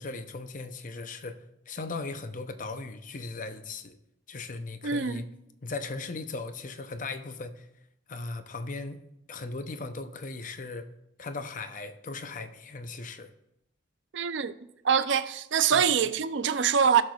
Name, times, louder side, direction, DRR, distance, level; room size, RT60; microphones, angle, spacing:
voice 1, 0.0-4.0 4.3-5.3 5.6-7.7 8.1-10.9 11.2-13.3 15.7-16.0, left 3 dB, 45° left, 0.6 m, -38 dB
voice 2, 4.8-5.3 14.1-14.5 14.8-17.0, right 7 dB, 65° right, 0.5 m, -24 dB
17.0 x 6.5 x 2.4 m
head